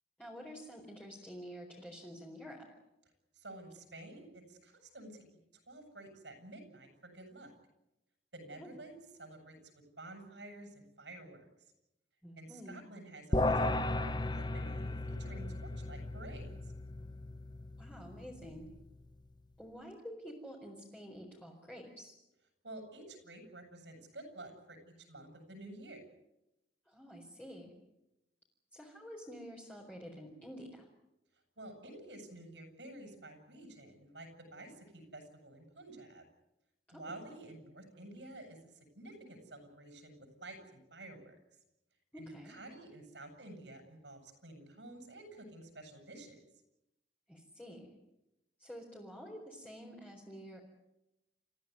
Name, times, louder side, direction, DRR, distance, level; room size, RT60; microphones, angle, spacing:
voice 1, 0.2-2.7 8.5-8.8 12.2-12.8 17.8-18.7 19.6-22.1 26.9-27.7 28.7-30.9 36.9-37.2 42.1-42.6 47.3-47.9 48.6-50.6, equal, 10° left, -4 dB, 4.5 m, -49 dB
voice 2, 3.4-5.2 5.7-7.5 8.3-11.5 12.4-13.6 14.0-16.5 22.6-26.0 31.6-36.2 36.9-38.6 39.0-41.4 42.1-46.4, right 2 dB, 80° right, 6 dB, 7.3 m, -51 dB
sound 1, 13.3-18.8, left 2 dB, 25° left, 1.1 m, -36 dB
29.5 x 15.5 x 9.5 m, 0.91 s
head